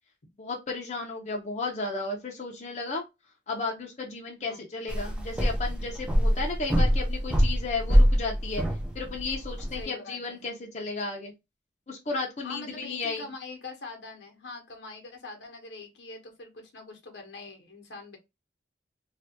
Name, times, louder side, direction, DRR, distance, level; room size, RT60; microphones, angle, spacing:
voice 1, 0.4-3.0 3.5-8.6 8.9-11.3 11.9-13.3, left 3 dB, 40° left, 0.6 m, -34 dB
sound 1, 4.9-9.8, equal, 5° right, 0.5 m, -25 dB
voice 2, 9.8-10.4 12.4-18.2, left 3 dB, 70° left, 0.9 m, -43 dB
3.2 x 2.3 x 2.8 m
head